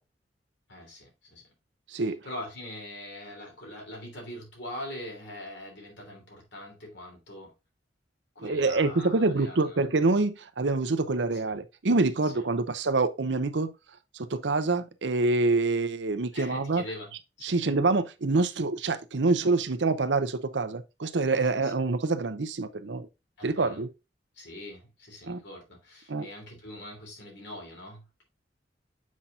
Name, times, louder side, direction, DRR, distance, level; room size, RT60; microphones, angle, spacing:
voice 1, 0.7-1.4 2.0-7.5 8.3-9.9 11.3-11.6 12.2-12.4 16.3-17.7 21.5-21.7 23.4-23.8 24.3-28.2, left 1 dB, 75° left, 3.2 m, -43 dB
voice 2, 8.4-13.7 14.1-16.8 17.4-23.1 23.4-23.9 25.2-25.4 26.1-26.3, right 3 dB, 80° right, 0.7 m, -26 dB
7.3 x 5.7 x 2.5 m
head